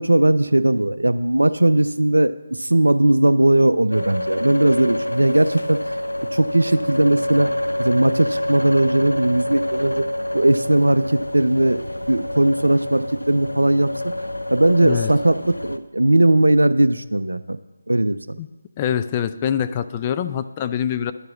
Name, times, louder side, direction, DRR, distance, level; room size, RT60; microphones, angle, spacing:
voice 1, 0.0-6.0 6.3-7.5 7.8-10.0 10.3-13.9 14.5-17.6 17.9-18.4, right 1 dB, 80° right, 14 dB, 0.4 m, -18 dB
sound 1, 3.9-15.8, left 1 dB, 85° left, 0.5 m, -27 dB
voice 2, 18.8-21.1, left 9 dB, 25° left, 11 dB, 0.3 m, -24 dB
10.5 x 4.7 x 6.1 m, 1.1 s
figure-of-eight pair, 150°, 0 cm